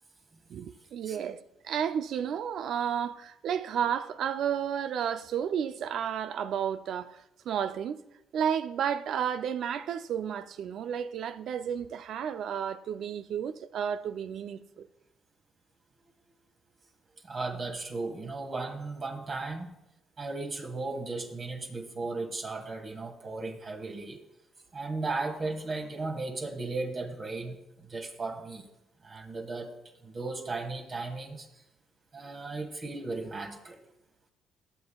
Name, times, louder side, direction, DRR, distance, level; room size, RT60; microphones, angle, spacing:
voice 1, 0.5-8.0 8.3-14.9, right 8 dB, 70° right, 0.5 m, -32 dB
voice 2, 17.2-19.8 20.2-24.2 24.7-28.7 29.0-29.8 30.0-31.6 32.1-33.8, right 3 dB, 40° right, 1.7 m, -36 dB
16.0 x 6.9 x 2.3 m
cardioid pair, 90°, 0 cm